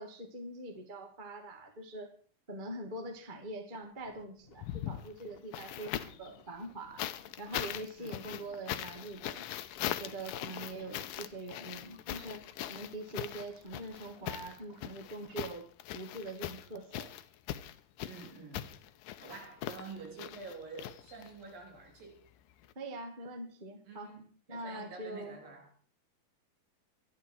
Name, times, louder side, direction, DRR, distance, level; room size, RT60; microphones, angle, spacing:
voice 1, 0.0-2.1 2.5-7.0 7.4-9.5 9.9-15.7 15.9-17.1 22.7-24.1 24.5-25.4, right 2 dB, 20° right, 1.7 m, -43 dB
sound 1, 3.8-15.5, left 3 dB, 60° left, 0.6 m, -61 dB
sound 2, 4.5-6.3 7.0-21.5 22.6-22.7, left 13 dB, 75° left, 2.4 m, -41 dB
voice 2, 18.0-18.7 19.2-22.2 23.9-24.2 24.5-25.7, right 4 dB, 70° right, 5.1 m, -48 dB
25.0 x 9.7 x 4.7 m
omnidirectional pair, 4.3 m